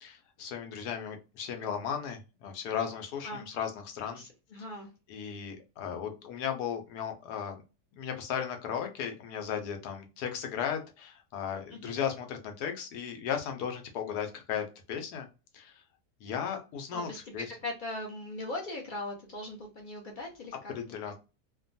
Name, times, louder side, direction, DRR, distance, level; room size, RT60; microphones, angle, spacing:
voice 1, 0.0-4.2 5.1-7.6 8.0-15.3 15.5-15.7 16.2-17.5 20.8-21.1, left 8 dB, 80° left, 4 dB, 1.2 m, -36 dB
voice 2, 4.1-4.9 11.7-12.0 16.9-17.2 17.6-20.7, left 2 dB, 65° left, 0 dB, 0.5 m, -39 dB
2.9 x 2.2 x 2.5 m, 0.30 s
omnidirectional pair, 1.7 m